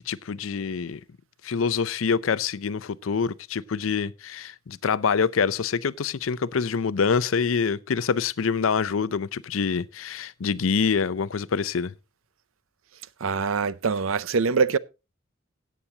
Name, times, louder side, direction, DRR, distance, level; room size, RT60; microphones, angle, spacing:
voice 1, 0.1-1.0 1.4-11.9, left 5 dB, 75° left, 0.5 m, -26 dB
voice 2, 13.2-14.8, right 5 dB, 80° right, 0.6 m, -24 dB
17.0 x 8.5 x 2.8 m
head